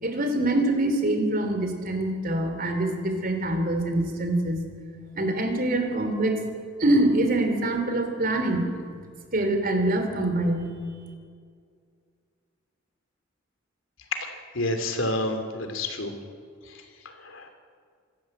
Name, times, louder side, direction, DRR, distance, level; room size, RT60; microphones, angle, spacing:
voice 1, 0.0-4.7 5.1-6.4 6.8-8.7 9.3-10.7, right 1 dB, 45° right, 5 dB, 3.3 m, -24 dB
voice 2, 14.5-16.1 17.2-17.5, left 1 dB, 80° left, 7 dB, 2.8 m, -28 dB
26.5 x 13.5 x 7.9 m, 2.1 s
head